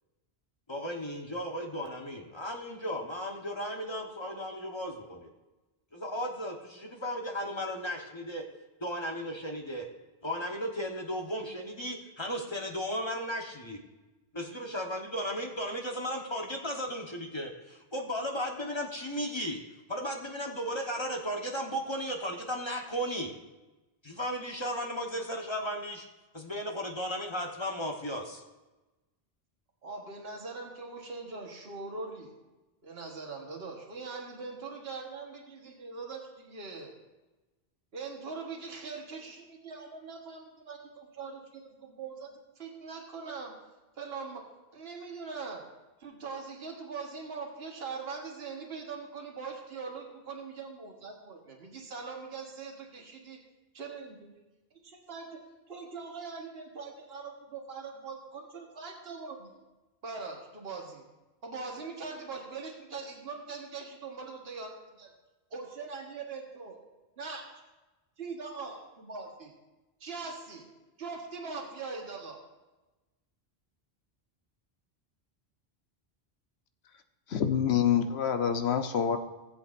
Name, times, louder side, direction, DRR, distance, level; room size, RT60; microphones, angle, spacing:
voice 1, 0.7-5.3 5.9-8.4 8.8-9.9 10.2-13.8 14.3-19.6 19.9-23.3 24.0-26.0 26.3-28.4, equal, 25° left, 1 dB, 1.2 m, -35 dB
voice 2, 29.8-32.3 32.8-37.0 37.9-42.3 42.6-43.5 44.0-44.4 44.7-45.6 46.0-53.4 53.7-54.3 54.8-55.4 55.7-59.5 60.0-61.0 61.4-65.1 65.5-66.8 67.2-67.4 68.2-69.5 70.0-70.7 71.0-72.4, right 4 dB, 70° right, 1 dB, 1.6 m, -41 dB
voice 3, 77.3-79.2, left 8 dB, 85° left, 7 dB, 1.1 m, -26 dB
18.5 x 8.1 x 2.6 m, 1.1 s
omnidirectional pair, 1.1 m